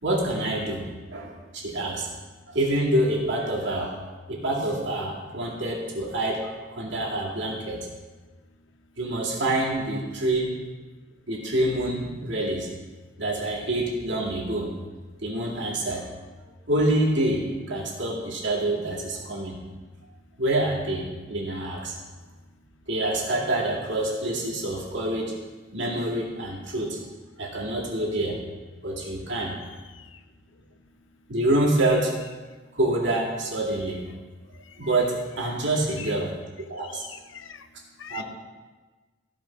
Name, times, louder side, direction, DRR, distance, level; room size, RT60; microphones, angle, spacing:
voice 1, 0.0-2.1 2.5-4.0 4.3-7.9 9.0-10.5 11.3-12.7 13.2-14.7 15.2-16.1 16.7-19.6 20.4-21.9 22.9-25.3 25.7-27.0 27.4-28.4 28.8-29.6 31.3-32.1 32.7-34.0 34.8-36.3 36.7-37.0 38.1-38.2, right 1 dB, 65° right, -4 dB, 2.3 m, -26 dB
voice 2, 29.5-30.2 35.9-36.2 36.8-37.6 38.0-38.2, left 9 dB, 75° left, 10 dB, 0.6 m, -43 dB
15.0 x 5.1 x 4.4 m, 1.3 s
head